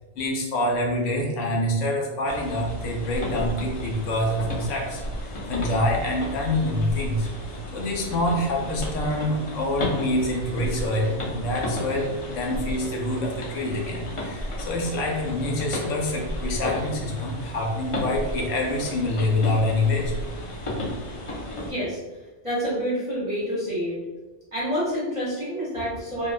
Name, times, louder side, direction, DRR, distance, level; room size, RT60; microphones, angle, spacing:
voice 1, 0.1-7.3 7.7-20.1 25.7-26.0, left 1 dB, 75° left, -1 dB, 0.9 m, -26 dB
sound 1, 2.3-21.7, left 1 dB, 55° left, 0.3 m, -33 dB
voice 2, 21.6-22.0 22.4-24.0 24.5-26.3, equal, 30° right, -9 dB, 0.6 m, -28 dB
2.6 x 2.1 x 2.3 m, 1.2 s
omnidirectional pair, 1.3 m